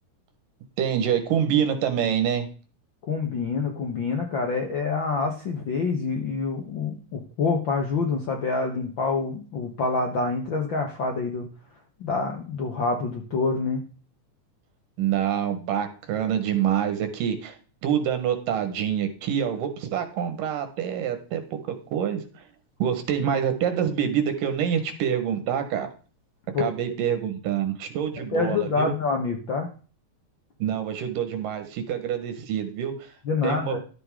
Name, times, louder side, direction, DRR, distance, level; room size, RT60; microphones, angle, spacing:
voice 1, 0.8-2.5 15.0-17.6 17.8-21.4 21.7-22.4 22.8-25.9 26.6-28.9 30.6-33.1 33.4-33.8, right 9 dB, 85° right, 8 dB, 3.0 m, -26 dB
voice 2, 3.1-11.4 12.0-13.9 26.5-26.7 28.3-29.7 33.2-33.8, left 4 dB, 65° left, 2 dB, 1.2 m, -26 dB
11.5 x 8.0 x 3.7 m, 0.38 s
omnidirectional pair, 3.8 m